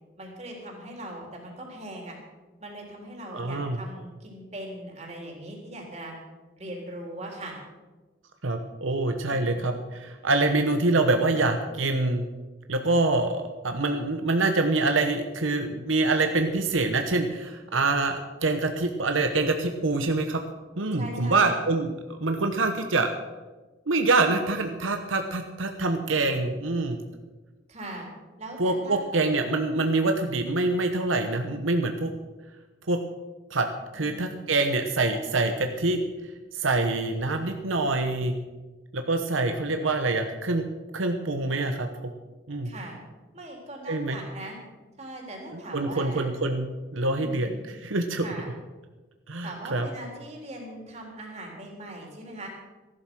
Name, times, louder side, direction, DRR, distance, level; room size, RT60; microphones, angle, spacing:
voice 1, 0.2-2.2 2.6-6.1 6.6-7.6 9.3-9.6 21.0-21.5 27.7-28.1 28.4-29.2 33.9-34.3 42.6-43.0 43.3-44.6 45.0-46.3 47.1-47.6 48.2-48.5 49.4-52.5, right 1 dB, 35° right, -1 dB, 3.7 m, -40 dB
voice 2, 3.3-3.8 8.4-12.2 12.7-20.4 20.8-23.1 23.9-27.0 28.6-32.1 32.9-33.0 33.5-33.7 33.9-36.0 36.5-38.3 38.9-40.7 40.9-41.9 42.5-42.7 43.9-44.2 45.5-46.7 46.9-48.2 49.3-49.9, right 2 dB, 85° right, 5 dB, 1.1 m, -25 dB
14.5 x 12.0 x 6.2 m, 1.2 s
head